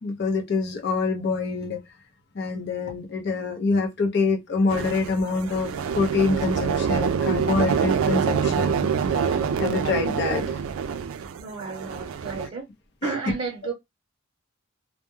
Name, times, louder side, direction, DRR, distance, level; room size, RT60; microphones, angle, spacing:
voice 1, 0.0-1.8 2.3-8.9 9.3-10.6 13.0-13.1, left 4 dB, 55° left, 0.5 m, -26 dB
Machinery AI, 4.7-12.5, right 6 dB, 80° right, 0.3 m, -26 dB
voice 2, 11.4-12.7 13.0-13.7, right 4 dB, 30° right, 0.8 m, -32 dB
2.2 x 2.0 x 3.0 m
head